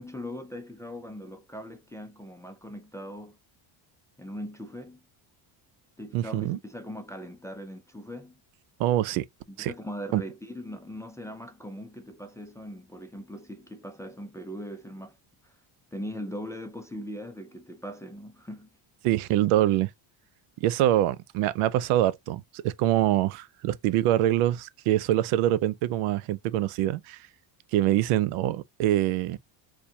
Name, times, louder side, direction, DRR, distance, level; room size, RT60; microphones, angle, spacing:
voice 1, 0.0-3.4 4.2-5.0 6.0-8.4 9.5-15.2 15.4-15.5 15.9-18.7, equal, 5° left, 0.3 m, -40 dB
voice 2, 6.1-6.6 8.8-9.3 9.6-9.7 10.1-10.2 19.0-19.9 20.6-27.2 27.7-29.4, right 13 dB, 80° right, 0.6 m, -24 dB
4.3 x 2.3 x 2.6 m
cardioid pair, 105°, 50 cm